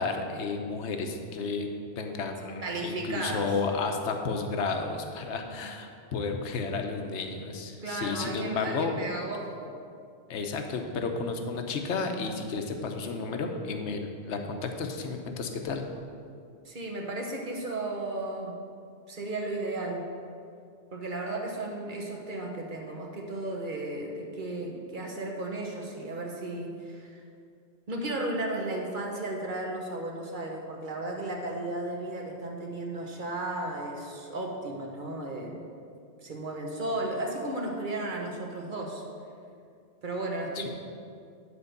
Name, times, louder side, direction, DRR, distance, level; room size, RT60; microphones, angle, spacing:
voice 1, 0.0-1.7 2.0-8.9 10.3-15.8 40.6-40.7, left 4 dB, 75° left, 4 dB, 1.1 m, -32 dB
voice 2, 2.6-3.5 7.8-9.7 16.6-18.6 19.1-20.1 20.9-27.2 27.9-35.6 36.2-39.0 40.0-40.7, right 2 dB, 45° right, 1 dB, 1.2 m, -34 dB
9.6 x 4.5 x 6.6 m, 2.3 s
omnidirectional pair, 1.2 m